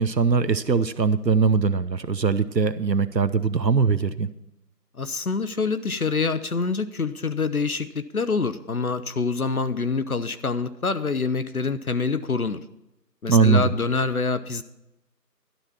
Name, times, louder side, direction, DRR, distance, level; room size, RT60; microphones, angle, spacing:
voice 1, 0.0-4.3 13.3-13.7, right 5 dB, 85° right, 12 dB, 1.0 m, -21 dB
voice 2, 5.0-12.6 13.2-14.6, left 4 dB, 60° left, 13 dB, 0.8 m, -26 dB
12.0 x 12.0 x 4.2 m, 0.88 s
figure-of-eight pair, 160°, 49 cm